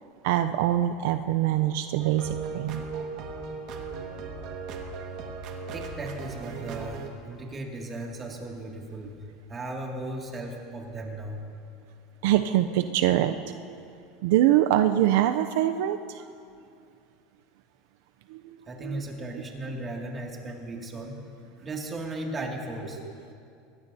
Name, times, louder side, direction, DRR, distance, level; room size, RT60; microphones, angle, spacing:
voice 1, 0.2-3.1 12.2-13.8 14.2-16.2 18.3-19.0, right 12 dB, 75° right, 9 dB, 0.5 m, -24 dB
sound 1, 2.0-7.1, right 4 dB, 55° right, 1.7 m, -37 dB
voice 2, 5.7-9.1 9.5-11.4 18.7-21.2 21.6-23.0, right 2 dB, 25° right, 0 dB, 2.2 m, -36 dB
22.5 x 16.0 x 2.7 m, 2.4 s
supercardioid pair, 125°, 0 cm